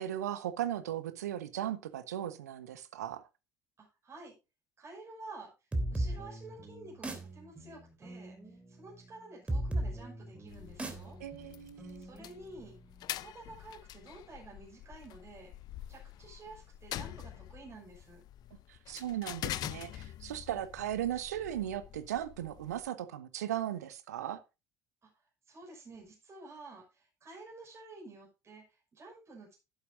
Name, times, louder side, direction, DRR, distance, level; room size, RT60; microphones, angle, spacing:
voice 1, 0.0-3.2 11.2-12.1 18.7-24.4, right 11 dB, 75° right, 1.1 m, -37 dB
voice 2, 3.8-4.3 4.8-5.5 5.9-11.2 12.0-12.7 13.1-15.5 15.9-18.2 25.0-25.1 25.5-29.5, right 2 dB, 30° right, 6.2 m, -51 dB
maiceo's cool beat, 5.7-13.1, right 1 dB, 15° right, 3.2 m, -38 dB
sound 1, 10.5-22.9, left 13 dB, 50° left, 0.6 m, -45 dB
13.5 x 11.5 x 2.6 m
figure-of-eight pair, 60°, 9 cm